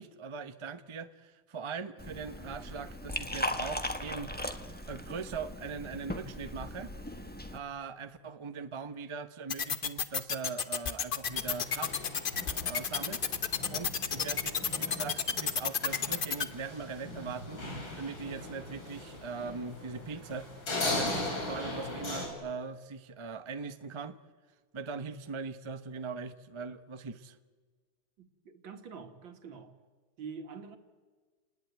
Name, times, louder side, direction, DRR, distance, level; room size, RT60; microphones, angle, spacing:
voice 1, 0.0-4.3 4.9-6.9 7.5-12.0 12.6-13.2 13.7-17.6 18.0-20.5 20.8-24.2 24.7-27.4, right 5 dB, 45° right, 0.3 m, -40 dB
Liquid, 2.0-7.6, left 1 dB, 5° left, 1.0 m, -38 dB
sound 1, 9.5-16.4, left 6 dB, 50° left, 0.6 m, -30 dB
sound 2, 11.3-22.3, left 2 dB, 75° left, 5.0 m, -39 dB
voice 2, 28.2-29.7 30.2-30.8, right 5 dB, 70° right, 2.5 m, -45 dB
29.0 x 20.0 x 9.4 m
omnidirectional pair, 2.1 m